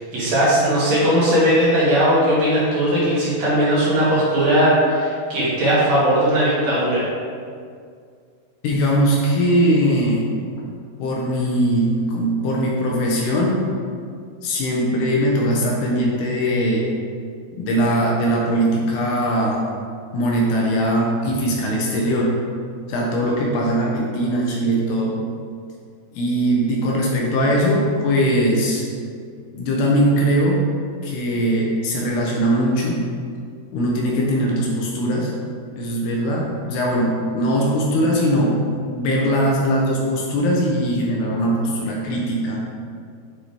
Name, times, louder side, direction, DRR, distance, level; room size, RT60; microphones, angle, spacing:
voice 1, 0.0-7.1, equal, 60° right, -9 dB, 2.8 m, -18 dB
voice 2, 8.6-10.3 11.0-13.7 14.4-16.9 17.5-19.7 20.1-22.4 22.9-25.2 26.1-28.8 29.5-30.7 31.0-33.0 33.7-35.3 35.8-38.6 38.9-42.6, equal, 75° left, -2 dB, 2.8 m, -20 dB
8.8 x 3.6 x 3.4 m, 2.2 s
omnidirectional pair, 5.0 m